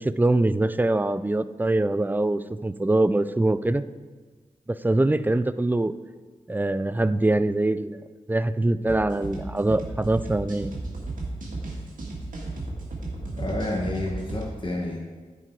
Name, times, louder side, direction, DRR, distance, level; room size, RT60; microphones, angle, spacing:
voice 1, 0.0-3.8 4.7-5.9 6.5-8.0 8.3-10.7, right 2 dB, 15° right, 14 dB, 0.3 m, -23 dB
sound 1, 8.9-14.4, right 2 dB, 80° right, 1.6 m, -34 dB
voice 2, 13.4-15.0, left 1 dB, 35° left, -2 dB, 1.1 m, -30 dB
9.9 x 4.5 x 4.5 m, 1.4 s
cardioid pair, 55°, 14 cm